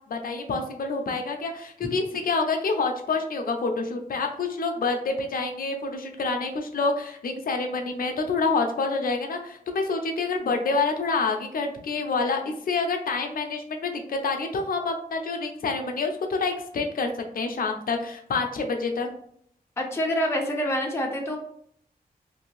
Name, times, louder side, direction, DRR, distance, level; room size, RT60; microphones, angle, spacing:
voice 1, 0.1-19.1, left 3 dB, 70° left, 4 dB, 0.6 m, -27 dB
voice 2, 19.8-21.4, equal, 15° left, 0 dB, 0.5 m, -26 dB
2.7 x 2.6 x 3.0 m, 0.67 s
wide cardioid pair, 130°, 16 cm